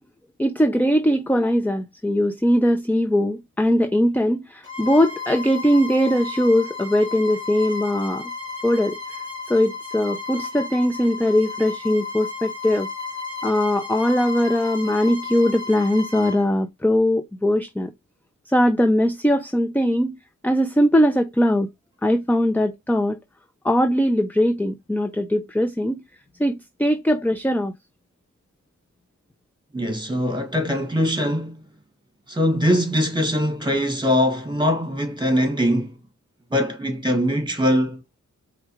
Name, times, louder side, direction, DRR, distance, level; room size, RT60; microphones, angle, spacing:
voice 1, 0.4-8.3 8.6-9.0 9.5-12.9 13.4-17.9 18.5-20.2 20.4-21.7 22.0-23.2 23.6-26.0 26.4-27.7, equal, 5° left, 0.5 m, -20 dB
Bowed string instrument, 4.6-16.4, left 4 dB, 40° left, 3.2 m, -33 dB
voice 2, 29.7-31.6 32.3-35.9 36.5-38.0, equal, 15° right, 1.9 m, -22 dB
4.6 x 3.6 x 3.0 m
wide cardioid pair, 95°, 30 cm